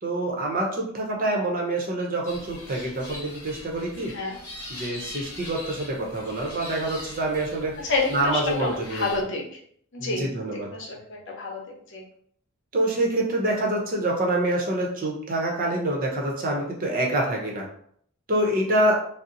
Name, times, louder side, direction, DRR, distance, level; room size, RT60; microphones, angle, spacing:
voice 1, 0.0-4.1 4.7-9.1 10.0-10.7 12.7-17.7 18.3-19.0, right 1 dB, 40° right, -1 dB, 0.7 m, -26 dB
sound 1, 2.2-9.2, left 1 dB, 15° left, 0.9 m, -41 dB
voice 2, 4.1-4.4 7.8-9.4 9.9-12.0, left 3 dB, 60° left, -1 dB, 0.8 m, -29 dB
2.7 x 2.0 x 3.8 m, 0.63 s
head